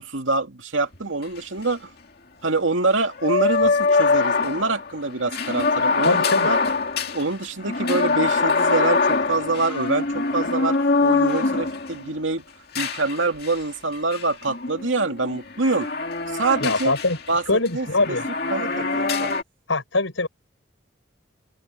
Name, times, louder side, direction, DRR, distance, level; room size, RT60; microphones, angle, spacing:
voice 1, 0.0-1.9 2.4-6.6 7.1-12.4 12.8-15.9 16.3-16.9 17.3-17.4 17.7-18.2 18.5-19.3, right 3 dB, 80° right, 2.5 m, -25 dB
sound 1, 0.9-1.0 1.2-1.3 3.2-12.1 12.7-13.6 14.1-17.3 17.7-19.4, left 3 dB, 50° left, 2.4 m, -23 dB
voice 2, 6.0-6.5 16.6-18.3 19.7-20.3, left 2 dB, 90° left, 6.0 m, -23 dB
open air
head